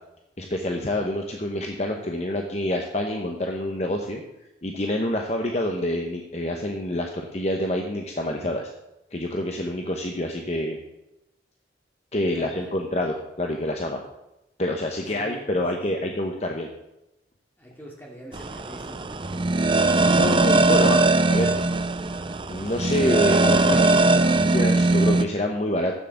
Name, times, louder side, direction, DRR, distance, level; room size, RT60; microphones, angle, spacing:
voice 1, 0.4-4.2 4.6-8.7 9.1-10.8 12.1-14.0 14.6-16.7 20.1-21.0 21.3-21.8 22.5-25.9, left 1 dB, 35° left, 2 dB, 0.9 m, -27 dB
voice 2, 12.3-12.8 15.1-15.5 16.0-16.1 17.6-21.0, equal, 10° left, -2 dB, 2.6 m, -45 dB
sound 1, 18.3-25.2, right 2 dB, 25° right, 0.5 m, -20 dB
11.0 x 7.5 x 7.0 m, 0.92 s
head